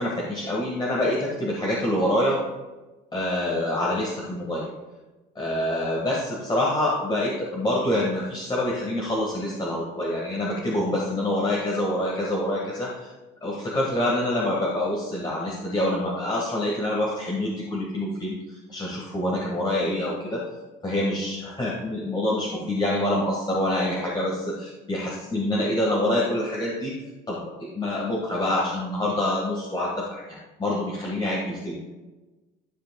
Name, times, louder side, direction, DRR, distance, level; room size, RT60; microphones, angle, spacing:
voice 1, 0.0-2.4 3.1-4.7 5.4-13.1 13.4-20.5 20.8-26.9 27.3-31.8, left 1 dB, 20° left, -4 dB, 1.8 m, -26 dB
12.5 x 5.1 x 2.3 m, 1.1 s
cardioid pair, 100°, 21 cm